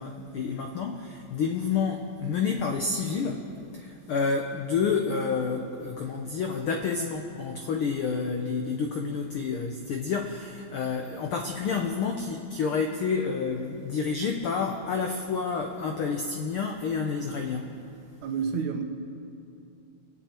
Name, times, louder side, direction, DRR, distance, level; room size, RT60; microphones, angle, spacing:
voice 1, 0.0-17.7, left 5 dB, 85° left, 3 dB, 1.2 m, -29 dB
voice 2, 18.2-18.8, right 6 dB, 80° right, 4 dB, 2.5 m, -29 dB
27.5 x 9.4 x 4.4 m, 2.7 s
omnidirectional pair, 3.4 m